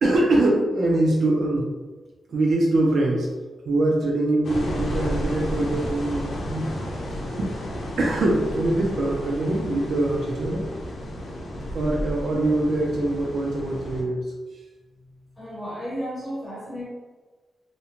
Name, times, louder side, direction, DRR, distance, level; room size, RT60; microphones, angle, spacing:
voice 1, 0.0-1.7 2.3-3.3 3.7-6.8 7.4-7.5 8.0-10.7 11.7-14.2, right 2 dB, 60° right, -2 dB, 0.4 m, -23 dB
sound 1, 4.4-14.0, equal, 75° left, 0.6 m, -32 dB
voice 2, 15.4-16.9, equal, ahead, -9 dB, 1.1 m, -33 dB
2.5 x 2.1 x 2.9 m, 1.3 s
wide cardioid pair, 155°, 0 cm